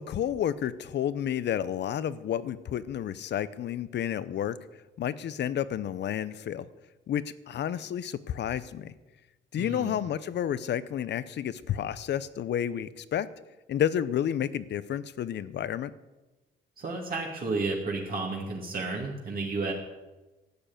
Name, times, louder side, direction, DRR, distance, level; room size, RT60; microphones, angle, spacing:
voice 1, 0.0-4.6 5.0-6.6 7.1-8.9 9.5-13.3 13.7-15.9, left 10 dB, 60° left, 16 dB, 0.7 m, -30 dB
voice 2, 9.6-10.1 16.8-19.7, right 3 dB, 45° right, -1 dB, 2.4 m, -32 dB
12.0 x 6.8 x 9.0 m, 1.1 s
cardioid pair, 90°, 20 cm